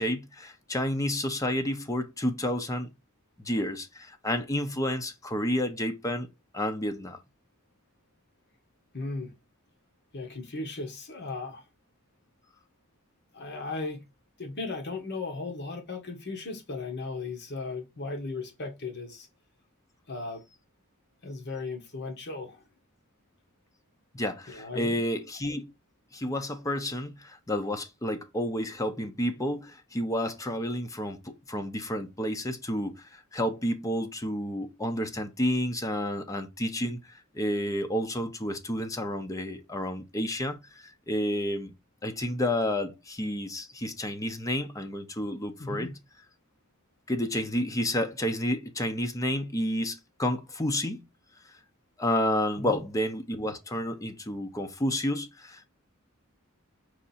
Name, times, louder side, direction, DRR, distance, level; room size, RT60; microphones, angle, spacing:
voice 1, 0.0-2.9 3.4-6.3 6.5-7.2 24.1-25.7 26.1-41.7 42.0-45.9 47.1-51.0 52.0-55.7, left 1 dB, 15° left, 0.7 m, -30 dB
voice 2, 8.9-9.3 10.1-11.6 13.3-14.0 14.4-19.3 20.1-20.4 21.2-22.6 24.5-25.0 45.6-46.0 52.5-52.8, left 3 dB, 55° left, 1.2 m, -36 dB
4.9 x 2.6 x 4.1 m
head